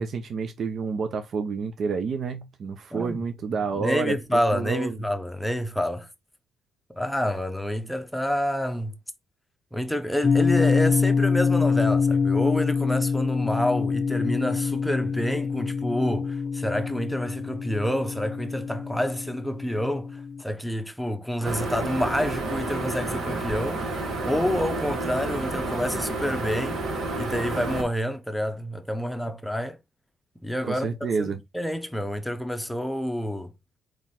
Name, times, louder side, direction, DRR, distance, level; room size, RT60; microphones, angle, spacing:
voice 1, 0.0-4.2 4.5-5.0 30.6-31.4, right 5 dB, 55° right, 0.7 m, -29 dB
voice 2, 2.9-3.2 3.7-6.1 6.9-8.9 9.7-26.8 27.1-29.8 30.4-33.5, equal, 5° left, 0.8 m, -28 dB
sound 1, 10.2-20.4, left 5 dB, 30° left, 0.4 m, -25 dB
sound 2, 21.4-27.8, right 2 dB, 70° right, 1.9 m, -30 dB
4.1 x 3.1 x 3.6 m
cardioid pair, 90°, 0 cm